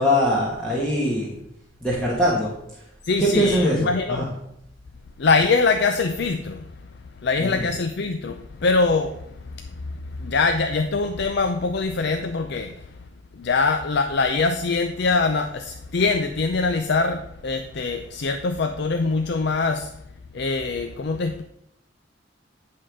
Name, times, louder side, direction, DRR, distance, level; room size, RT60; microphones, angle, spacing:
voice 1, 0.0-1.3 1.8-2.5 3.2-4.3 7.4-7.7, equal, 5° left, -6 dB, 1.6 m, -22 dB
voice 2, 3.0-4.3 5.2-6.7 7.2-9.8 10.2-12.8 13.4-19.9 20.3-21.4, left 4 dB, 60° left, 6 dB, 0.5 m, -23 dB
10.0 x 3.8 x 6.2 m, 0.78 s
head